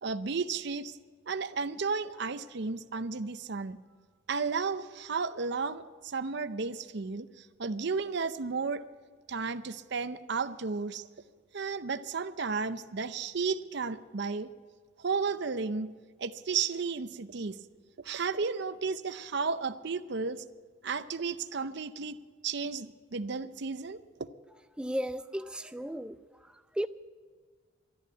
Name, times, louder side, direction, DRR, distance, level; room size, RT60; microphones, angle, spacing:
voice 1, 0.0-1.0 1.3-3.8 4.3-7.3 7.6-8.8 9.3-11.0 11.5-14.5 15.0-15.9 16.2-17.6 18.0-20.4 20.8-22.2 22.4-24.0, right 4 dB, 55° right, 0.6 m, -33 dB
voice 2, 24.8-26.2 26.5-26.9, equal, 5° right, 0.3 m, -35 dB
12.5 x 11.0 x 8.7 m
head